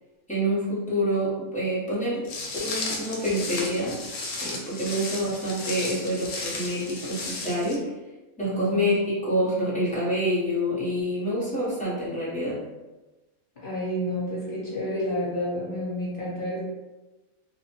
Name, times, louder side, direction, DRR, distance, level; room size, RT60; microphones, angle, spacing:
voice 1, 0.3-2.3 2.6-4.0 4.4-7.9 8.4-12.6, equal, 5° left, -10 dB, 0.6 m, -27 dB
Walk footsteps, 2.3-7.8, left 3 dB, 75° left, 1.0 m, -34 dB
voice 2, 8.4-8.8 13.6-16.6, left 1 dB, 40° left, -8 dB, 1.1 m, -30 dB
2.7 x 2.1 x 2.9 m, 1.1 s
omnidirectional pair, 1.5 m